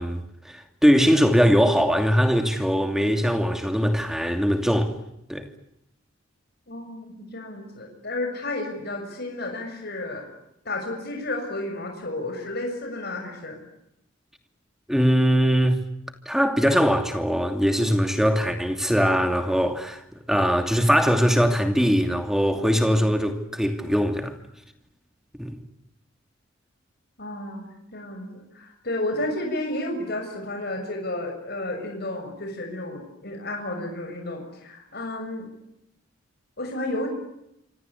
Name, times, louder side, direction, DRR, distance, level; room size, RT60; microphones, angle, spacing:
voice 1, 0.0-4.9 5.3-5.4 14.9-15.8 16.3-24.4 25.4-25.6, equal, ahead, 2.7 m, -21 dB
voice 2, 6.7-10.2 10.6-13.6 27.2-35.5 36.6-37.1, left 1 dB, 55° left, 6.7 m, -32 dB
26.5 x 26.0 x 8.4 m
head